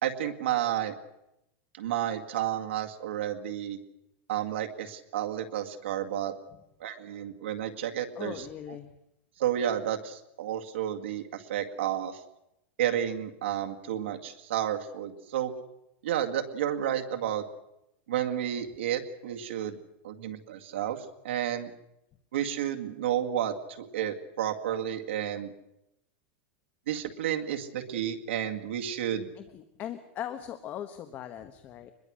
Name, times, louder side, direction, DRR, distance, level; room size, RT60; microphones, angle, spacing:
voice 1, 0.0-0.9 1.8-3.8 4.3-6.3 6.8-8.3 9.4-12.2 12.8-15.5 16.0-17.4 18.1-19.8 20.0-21.7 22.3-25.5 26.9-29.3, right 10 dB, 85° right, 4 dB, 2.2 m, -31 dB
voice 2, 8.1-8.9 29.4-31.9, left 10 dB, 30° left, 8 dB, 1.1 m, -40 dB
24.5 x 21.5 x 6.4 m, 0.88 s
supercardioid pair, 160°, 6 cm